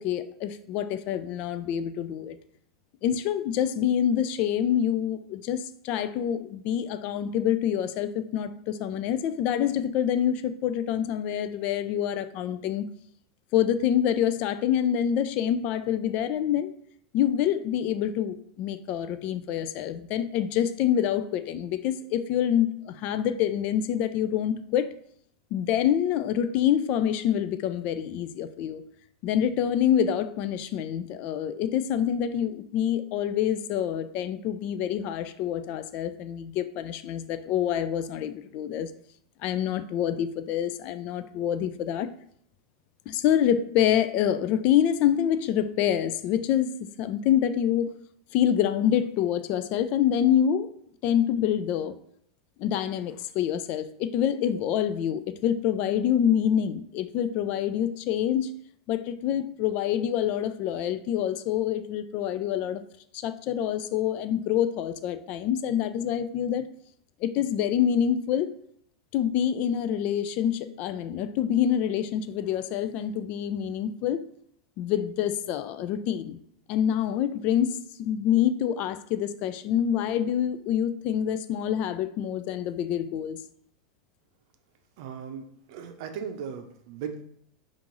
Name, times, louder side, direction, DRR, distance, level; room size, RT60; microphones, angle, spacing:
voice 1, 0.0-2.4 3.0-12.9 13.5-16.7 17.1-24.9 25.5-28.8 29.2-38.9 39.4-42.1 43.1-48.0 48.3-50.7 51.0-52.0 52.6-58.5 58.9-62.8 63.1-66.7 67.2-68.5 69.1-74.3 74.8-76.4 76.7-83.4, left 10 dB, 50° left, 0.3 m, -26 dB
voice 2, 85.0-87.2, right 7 dB, 60° right, 0.6 m, -37 dB
5.1 x 2.5 x 3.0 m
hypercardioid pair, 115°, 3 cm